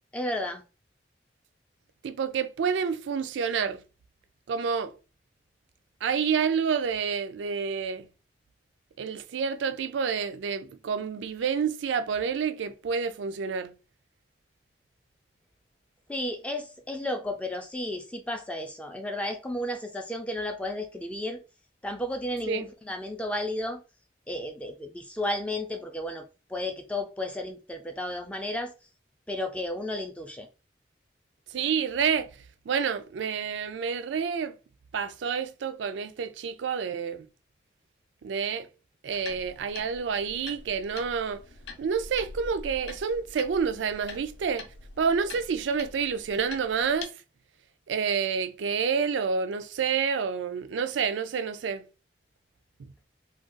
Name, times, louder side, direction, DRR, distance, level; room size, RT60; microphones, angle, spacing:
voice 1, 0.1-0.6 16.1-21.4 21.8-23.8 24.3-28.7 29.3-30.5, left 1 dB, 5° left, 0.3 m, -33 dB
voice 2, 2.0-3.8 4.5-4.9 6.0-8.1 9.0-13.7 22.5-22.7 31.5-32.3 32.7-34.6 34.9-37.3 38.2-38.7 39.0-41.4 41.8-44.7 45.0-47.1 47.9-51.8 52.8-52.9, right 6 dB, 90° right, 0.4 m, -28 dB
sound 1, 39.1-47.1, left 3 dB, 70° left, 0.6 m, -45 dB
2.5 x 2.3 x 3.7 m
head